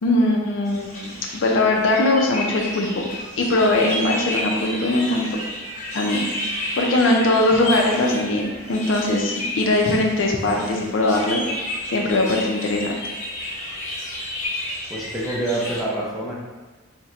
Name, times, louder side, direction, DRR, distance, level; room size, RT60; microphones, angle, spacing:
voice 1, 0.0-3.1 3.3-5.3 5.9-11.4 11.9-12.9, left 2 dB, 75° left, 0 dB, 0.5 m, -21 dB
sound 1, 0.6-15.8, left 1 dB, 35° left, 0.8 m, -31 dB
voice 2, 14.9-16.3, right 2 dB, ahead, -6 dB, 0.5 m, -26 dB
4.1 x 2.1 x 2.5 m, 1.3 s
head